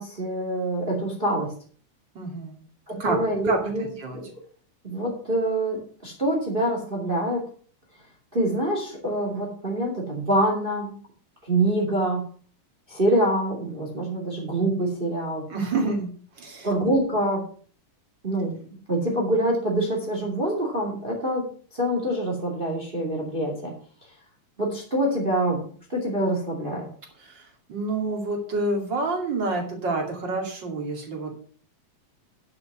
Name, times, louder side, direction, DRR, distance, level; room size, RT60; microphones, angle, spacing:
voice 1, 0.0-1.5 2.9-4.3 4.8-7.4 8.3-10.9 11.4-12.3 12.9-15.5 16.6-17.4 18.2-18.6 18.9-21.5 21.7-23.7 24.6-25.6 25.9-26.9, right 1 dB, 20° right, 0 dB, 2.4 m, -25 dB
voice 2, 2.1-2.6 3.0-3.2 3.4-3.6 4.0-4.2 15.5-16.1 16.4-16.7 27.2-31.3, right 3 dB, 40° right, 1 dB, 3.1 m, -28 dB
10.5 x 6.7 x 6.1 m, 0.43 s
omnidirectional pair, 3.4 m